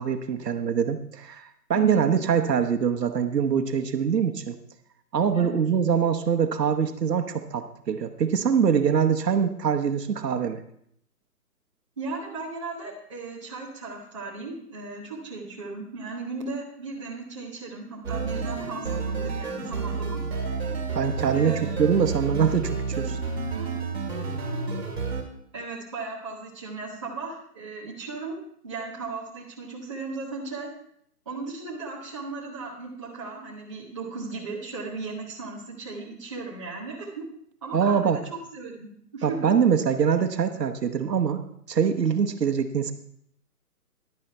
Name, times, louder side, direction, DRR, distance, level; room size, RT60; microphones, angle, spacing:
voice 1, 0.0-4.6 5.1-10.6 20.9-23.1 37.7-38.2 39.2-41.4 41.7-42.9, right 7 dB, 85° right, 6 dB, 1.1 m, -24 dB
voice 2, 1.7-2.1 5.3-5.6 12.0-20.2 21.3-21.8 24.4-24.6 25.5-28.4 28.6-30.7 31.2-37.3 37.6-38.1 38.5-38.9 39.1-39.5, right 4 dB, 20° right, -7 dB, 1.1 m, -36 dB
sound 1, 18.0-25.2, right 4 dB, 40° right, 1.9 m, -30 dB
11.0 x 10.5 x 3.3 m, 0.69 s
hypercardioid pair, 175°, 48 cm